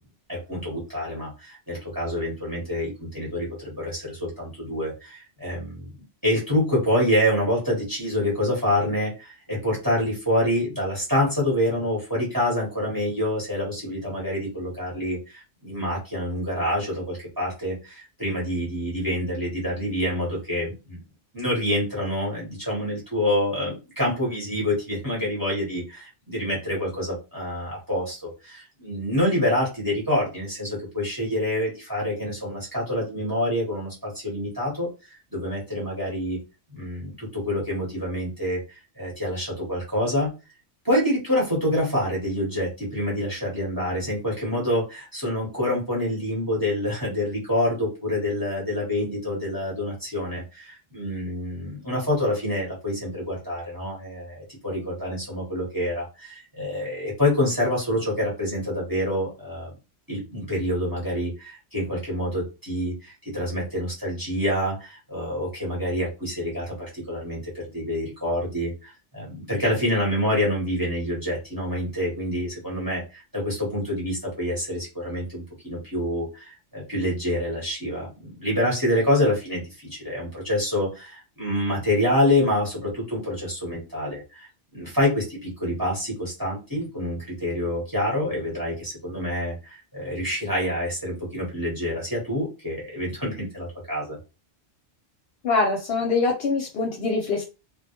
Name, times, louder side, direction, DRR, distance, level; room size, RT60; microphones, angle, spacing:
voice 1, 0.3-5.9 6.2-21.0 21.3-36.4 36.7-40.3 40.8-59.7 60.1-94.2, left 1 dB, 20° right, -4 dB, 0.9 m, -27 dB
voice 2, 95.4-97.4, left 3 dB, 65° left, 1 dB, 0.7 m, -24 dB
2.2 x 2.0 x 2.8 m, 0.29 s
omnidirectional pair, 1.2 m